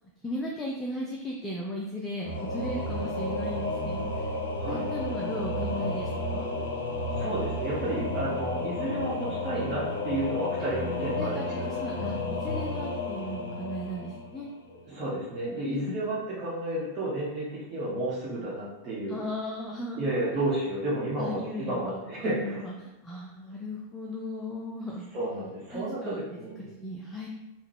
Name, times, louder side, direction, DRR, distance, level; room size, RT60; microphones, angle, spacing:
voice 1, 0.2-4.3 4.7-6.4 9.7-9.8 11.2-14.5 15.7-16.1 19.1-20.2 21.2-25.1 25.7-26.2 26.6-27.3, left 1 dB, 10° left, -3 dB, 0.5 m, -36 dB
Singing / Musical instrument, 2.2-14.8, left 2 dB, 70° left, 0.6 m, -32 dB
voice 2, 7.1-11.5 14.7-19.2 20.0-22.6 25.1-26.6, right 1 dB, 30° right, -7 dB, 1.0 m, -32 dB
3.7 x 2.2 x 4.4 m, 1.0 s
figure-of-eight pair, 90°, 0 cm